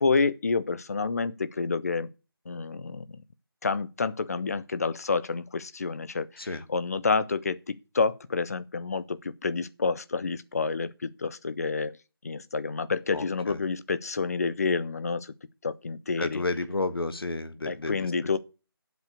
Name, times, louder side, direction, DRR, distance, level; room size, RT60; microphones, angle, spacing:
voice 1, 0.0-2.1 2.5-3.0 3.6-12.0 12.2-15.3 15.6-16.4 17.7-18.4, left 4 dB, 40° left, 0.6 m, -29 dB
voice 2, 13.1-13.6 16.2-18.1, left 2 dB, 70° left, 1.4 m, -31 dB
7.7 x 7.3 x 6.7 m
figure-of-eight pair, 160°, 13 cm